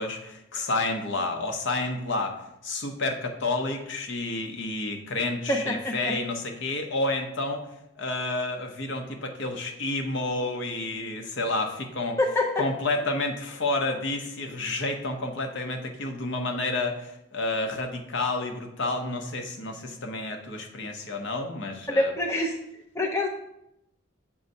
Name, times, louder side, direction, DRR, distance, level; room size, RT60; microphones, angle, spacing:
voice 1, 0.0-2.4 2.6-7.6 8.0-12.2 12.6-22.1, left 2 dB, 60° left, 4 dB, 0.7 m, -30 dB
voice 2, 5.5-6.1 12.2-12.6 21.9-22.5 23.0-23.3, left 1 dB, 15° left, 1 dB, 0.4 m, -25 dB
7.1 x 2.6 x 5.3 m, 0.84 s
head